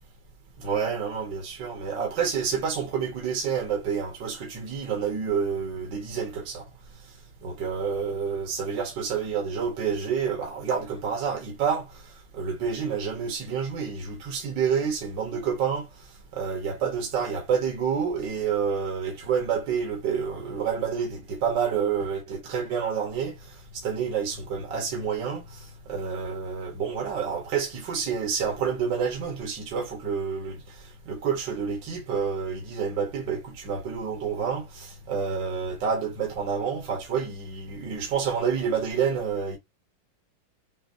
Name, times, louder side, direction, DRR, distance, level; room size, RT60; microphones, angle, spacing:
voice 1, 0.6-6.6 7.4-15.9 16.3-39.6, right 6 dB, 65° right, 2.0 m, -29 dB
6.9 x 2.3 x 2.6 m
omnidirectional pair, 2.2 m